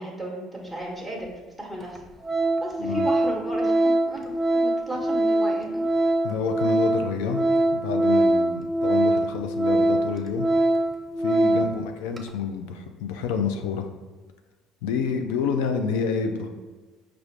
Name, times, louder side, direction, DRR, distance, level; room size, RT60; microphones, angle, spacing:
voice 1, 0.0-2.0 2.6-4.2 4.5-5.8 11.5-11.6, right 1 dB, 5° left, -2 dB, 1.0 m, -34 dB
Organ, 1.2-1.3 1.8-2.0 2.2-11.8 12.1-12.3, right 1 dB, 25° right, 0.5 m, -23 dB
voice 2, 6.2-7.4 7.7-10.5 11.2-13.9 14.8-16.5, left 6 dB, 80° left, 6 dB, 0.4 m, -28 dB
4.8 x 2.5 x 3.2 m, 1.3 s
hypercardioid pair, 65°, 0 cm